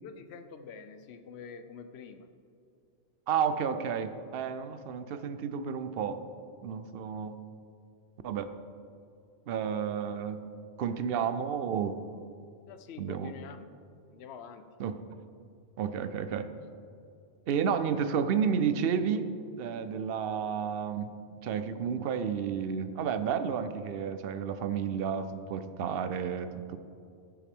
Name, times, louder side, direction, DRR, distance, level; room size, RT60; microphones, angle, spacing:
voice 1, 0.0-2.3 12.7-13.7 14.1-14.6, left 6 dB, 70° left, 9 dB, 0.9 m, -46 dB
voice 2, 3.3-6.2 6.6-7.4 8.2-8.5 9.5-10.4 10.8-12.0 13.0-13.3 14.8-15.0 15.8-16.5 17.5-19.3 19.6-21.1 21.4-26.8, right 7 dB, 65° right, 10 dB, 0.8 m, -31 dB
15.0 x 7.0 x 3.6 m, 2.4 s
omnidirectional pair, 1.1 m